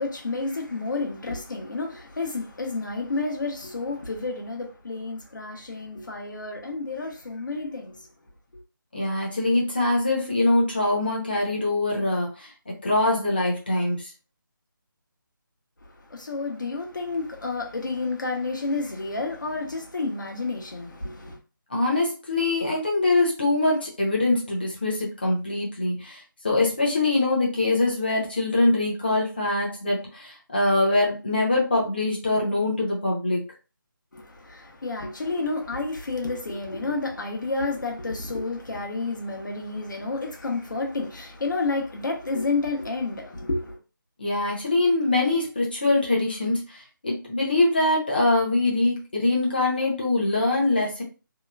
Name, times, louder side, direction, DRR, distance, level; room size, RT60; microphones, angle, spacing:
voice 1, 0.0-8.1 15.9-21.4 34.1-43.8, left 3 dB, 60° left, 0.9 m, -30 dB
voice 2, 8.9-12.5 12.8-14.1 21.7-33.4 44.2-51.0, left 2 dB, 25° left, 0.8 m, -23 dB
2.8 x 2.2 x 2.3 m
figure-of-eight pair, 180°, 12 cm